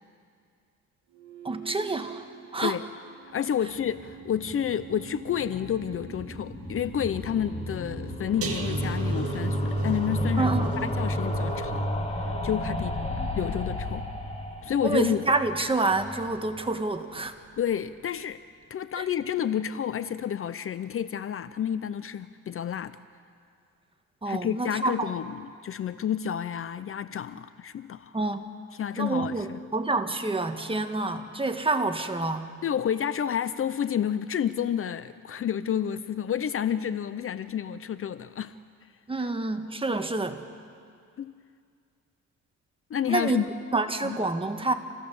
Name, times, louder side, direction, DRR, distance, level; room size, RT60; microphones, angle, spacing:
sound 1, 1.1-10.7, right 9 dB, 70° right, 1.8 m, -47 dB
voice 1, 1.4-2.3 2.5-2.8 10.4-10.9 13.0-13.5 14.8-17.3 19.0-19.1 24.2-25.1 28.1-28.5 29.0-32.5 39.1-40.4 43.1-43.4 43.7-44.7, right 3 dB, 20° right, 6 dB, 1.5 m, -28 dB
voice 2, 3.3-10.5 10.8-11.9 12.4-13.0 13.4-14.1 14.6-15.2 17.6-18.4 18.7-23.0 24.3-28.1 28.7-29.6 32.6-38.5 41.2-41.3 42.9-43.4 44.0-44.2, left 9 dB, 45° left, 14 dB, 0.6 m, -30 dB
sound 2, 3.6-16.7 17.0-17.1 17.3-17.4 17.6-17.7, left 2 dB, 20° left, 2.4 m, -36 dB
sound 3, 8.4-15.5 15.8-16.1 16.5-16.6, right 1 dB, 50° right, 2.3 m, -31 dB
27.0 x 16.0 x 7.0 m, 2.3 s
cardioid pair, 90°, 30 cm